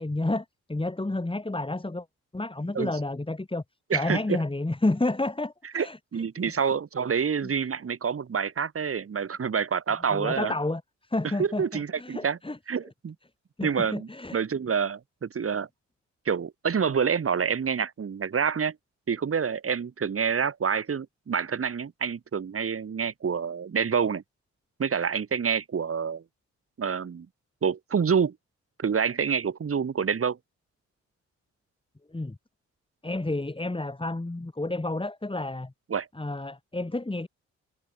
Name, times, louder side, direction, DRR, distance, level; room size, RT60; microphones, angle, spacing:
voice 1, 0.0-2.0 2.3-3.6 3.9-6.0 7.4-7.5 10.1-10.8 11.1-12.6 13.6-14.4 32.1-32.4 33.0-35.7 36.1-37.3, left 2 dB, 15° left, 5.3 m, -30 dB
voice 2, 3.9-4.4 5.7-5.9 6.1-10.5 11.4-12.4 12.7-13.2 13.6-15.7 16.3-18.8 19.1-24.2 24.8-26.2 26.8-27.3 27.6-28.4 28.8-30.4 35.9-36.1, right 6 dB, 50° right, 2.3 m, -27 dB
cardioid pair, 65°, 30 cm